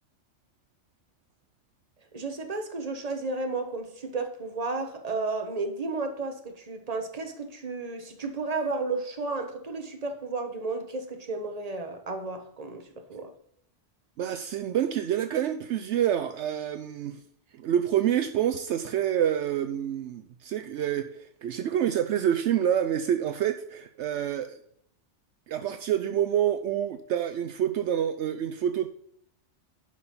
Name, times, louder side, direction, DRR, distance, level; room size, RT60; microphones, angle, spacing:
voice 1, 2.1-13.3, right 3 dB, 35° right, 1.3 m, -33 dB
voice 2, 14.2-17.2 17.6-24.6 25.5-28.9, right 10 dB, 70° right, 0.9 m, -27 dB
11.0 x 5.0 x 5.5 m
omnidirectional pair, 1.2 m